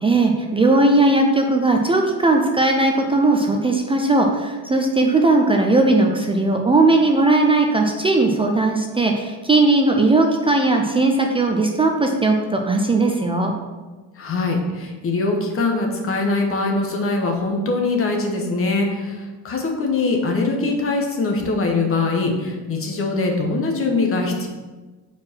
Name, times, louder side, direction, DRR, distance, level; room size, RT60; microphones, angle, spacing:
voice 1, 0.0-13.5, right 2 dB, 15° right, 2 dB, 0.3 m, -18 dB
voice 2, 14.2-24.5, left 3 dB, 30° left, 2 dB, 1.1 m, -22 dB
4.7 x 4.6 x 6.0 m, 1.3 s
cardioid pair, 150°, 42 cm